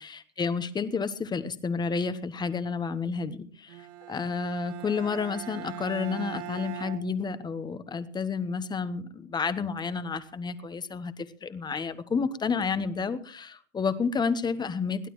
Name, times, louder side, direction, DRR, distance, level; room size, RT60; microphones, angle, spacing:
voice 1, 0.0-15.1, left 5 dB, 10° left, 13 dB, 1.0 m, -30 dB
Bowed string instrument, 3.7-7.8, right 13 dB, 65° right, 1.6 m, -41 dB
22.0 x 16.0 x 3.1 m, 0.44 s
supercardioid pair, 145°, 38 cm